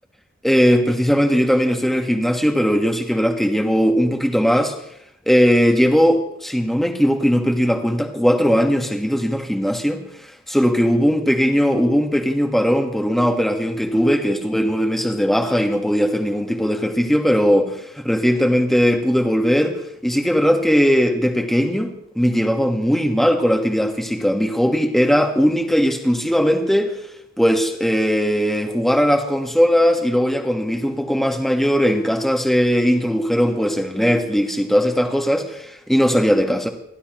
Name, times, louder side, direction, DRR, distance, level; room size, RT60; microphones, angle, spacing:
voice 1, 0.4-4.7 5.3-10.0 10.5-26.9 27.4-36.7, equal, ahead, 4 dB, 1.4 m, -19 dB
29.0 x 12.5 x 3.1 m, 0.74 s
head